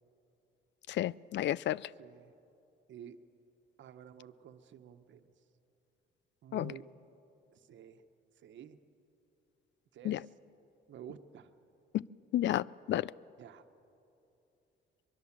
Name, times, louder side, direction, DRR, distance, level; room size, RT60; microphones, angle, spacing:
voice 1, 0.9-1.8 6.5-6.7 10.0-10.2 11.9-12.0 12.3-13.1, left 13 dB, 65° left, 22 dB, 0.5 m, -31 dB
voice 2, 2.0-2.3 2.9-3.2 3.8-5.3 6.4-6.9 7.5-8.0 8.4-8.8 9.9-10.3 10.9-11.5 13.4-13.7, right 9 dB, 70° right, 9 dB, 1.2 m, -51 dB
24.0 x 21.5 x 7.4 m, 2.8 s
cardioid pair, 90°, 20 cm